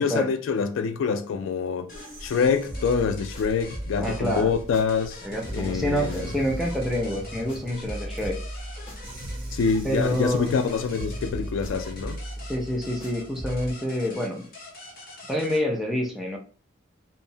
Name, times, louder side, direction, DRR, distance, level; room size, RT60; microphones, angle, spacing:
voice 1, 0.0-1.9 2.2-5.2 5.5-6.3 9.5-12.2, left 5 dB, 85° left, 0.3 m, -26 dB
sound 1, 1.9-15.6, left 2 dB, 50° left, 0.8 m, -45 dB
sound 2, 1.9-12.0, right 1 dB, 45° right, 0.7 m, -43 dB
sound 3, 2.7-5.2 5.4-10.7 10.9-13.7, right 1 dB, 30° left, 1.0 m, -37 dB
voice 2, 4.0-4.5 5.2-8.4 9.8-10.5 12.4-14.5 15.3-16.4, equal, ahead, 0.4 m, -27 dB
2.7 x 2.0 x 2.7 m
head